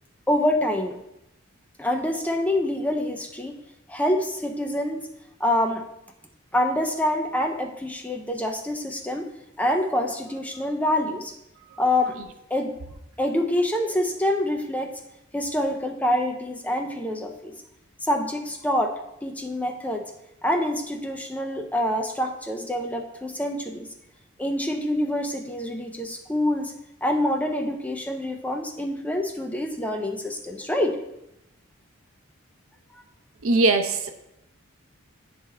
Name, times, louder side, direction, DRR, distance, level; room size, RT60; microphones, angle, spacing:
voice 1, 0.3-1.0 1.8-3.6 3.9-5.0 5.4-5.8 6.5-9.3 9.6-11.3 11.8-12.2 12.5-12.7 13.2-14.9 15.3-17.5 18.0-18.9 19.2-20.1 20.4-23.9 24.4-26.7 27.0-31.0, left 1 dB, 5° left, 3 dB, 0.4 m, -26 dB
voice 2, 33.4-34.1, right 2 dB, 80° right, 7 dB, 0.6 m, -21 dB
9.4 x 3.4 x 3.3 m, 0.87 s
head